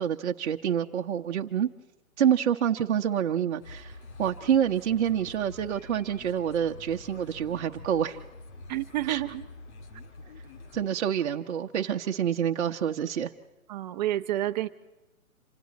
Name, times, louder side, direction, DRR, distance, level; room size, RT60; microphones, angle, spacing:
voice 1, 0.0-1.7 2.2-8.2 9.1-9.2 10.7-13.3, right 9 dB, 55° right, 3 dB, 1.0 m, -27 dB
sound 1, 3.6-10.8, left 2 dB, 50° left, 2.4 m, -46 dB
voice 2, 8.7-9.4 13.7-14.7, right 14 dB, 30° right, 8 dB, 0.9 m, -29 dB
28.0 x 26.5 x 4.2 m, 1.0 s
hypercardioid pair, 140°, 41 cm